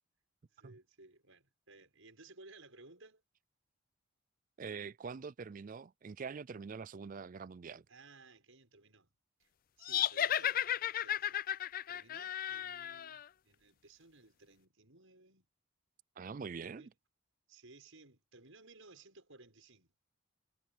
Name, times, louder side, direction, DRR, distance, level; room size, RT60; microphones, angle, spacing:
voice 1, 0.5-3.2 7.9-9.1 9.4-9.5 9.8-11.4 11.9-15.5 16.6-16.9 17.5-19.9, right 3 dB, 65° right, 6.5 m, -59 dB
voice 2, 4.6-7.8 16.2-16.8, right 5 dB, 40° right, 0.3 m, -44 dB
sound 1, 9.8-13.2, left 10 dB, 40° left, 0.4 m, -34 dB
head